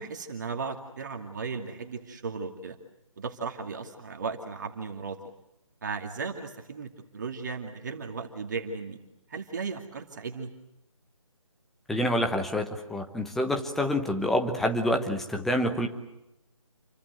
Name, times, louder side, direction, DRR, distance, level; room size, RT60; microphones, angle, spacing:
voice 1, 0.0-2.8 3.2-5.2 5.8-9.0 9.3-10.5, right 5 dB, 35° right, 3 dB, 2.5 m, -36 dB
voice 2, 11.9-15.9, left 1 dB, ahead, 4 dB, 0.9 m, -27 dB
29.0 x 24.0 x 8.0 m, 0.88 s
figure-of-eight pair, 155°, 17 cm